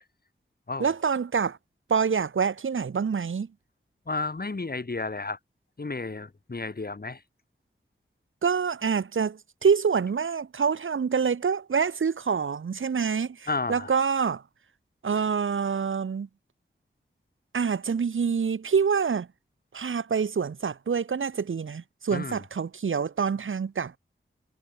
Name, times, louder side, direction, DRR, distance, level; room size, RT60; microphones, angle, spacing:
voice 1, 0.8-1.6 1.9-3.5 8.4-14.4 15.0-16.3 17.5-19.3 19.7-24.0, right 6 dB, 80° right, 1.2 m, -26 dB
voice 2, 4.1-5.4 5.8-7.2 13.5-13.9 22.1-22.4, left 3 dB, 50° left, 3.8 m, -32 dB
cardioid pair, 50°, 20 cm